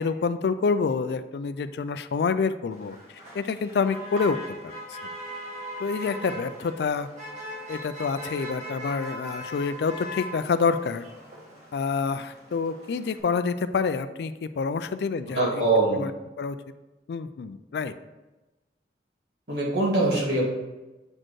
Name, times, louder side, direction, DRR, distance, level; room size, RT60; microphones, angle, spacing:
voice 1, 0.0-3.0 3.3-4.6 4.9-5.0 5.8-7.1 7.7-11.0 11.7-15.6 16.0-16.1 16.4-16.6 17.1-17.9, left 5 dB, 70° left, 12 dB, 0.3 m, -27 dB
Motor vehicle (road), 2.7-13.2, equal, 45° right, 1.6 m, -40 dB
voice 2, 15.3-16.1 19.5-20.5, right 2 dB, 75° right, -4 dB, 1.9 m, -23 dB
7.6 x 4.2 x 3.1 m, 1.1 s
head